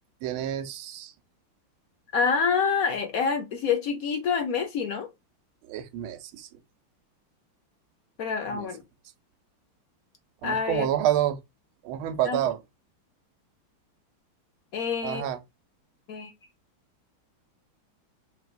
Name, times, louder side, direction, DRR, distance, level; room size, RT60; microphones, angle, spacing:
voice 1, 0.2-1.1 5.6-6.5 8.5-8.7 10.4-11.4 11.8-12.6 15.0-15.4, right 11 dB, 85° right, 1.5 m, -28 dB
voice 2, 2.1-5.1 8.2-8.8 10.4-10.9 12.3-12.4 14.7-15.2 16.1-16.3, left 6 dB, 65° left, 0.9 m, -27 dB
4.8 x 3.3 x 2.4 m
omnidirectional pair, 2.4 m